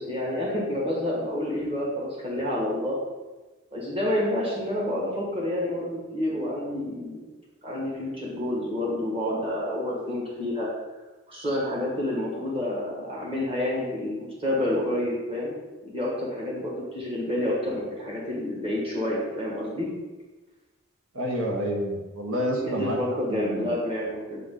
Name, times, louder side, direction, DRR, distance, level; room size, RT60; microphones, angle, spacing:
voice 1, 0.0-3.0 3.7-7.2 7.6-10.7 11.3-15.5 15.8-19.9 22.6-24.4, left 1 dB, 25° right, -5 dB, 1.5 m, -29 dB
voice 2, 21.1-23.0 23.3-23.8, equal, 85° right, -1 dB, 1.1 m, -29 dB
7.2 x 3.8 x 3.8 m, 1.2 s
head